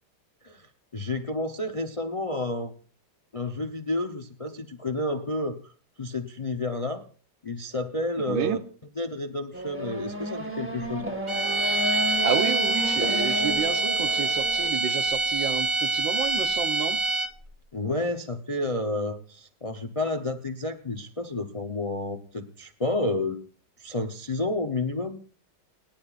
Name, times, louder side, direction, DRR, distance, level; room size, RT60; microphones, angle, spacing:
voice 1, 0.4-2.7 3.3-5.7 6.0-7.0 7.4-8.6 8.9-11.0 17.7-23.4 23.8-25.2, left 2 dB, 35° left, 7 dB, 0.5 m, -30 dB
voice 2, 8.3-8.6 12.2-17.0, right 8 dB, 85° right, 9 dB, 1.6 m, -31 dB
Race car auto racing / Accelerating revving vroom, 9.5-14.7, right 1 dB, 5° right, 1.6 m, -32 dB
sound 1, 11.3-17.5, right 3 dB, 35° right, 0.5 m, -25 dB
29.5 x 10.5 x 2.5 m, 0.39 s
omnidirectional pair, 2.0 m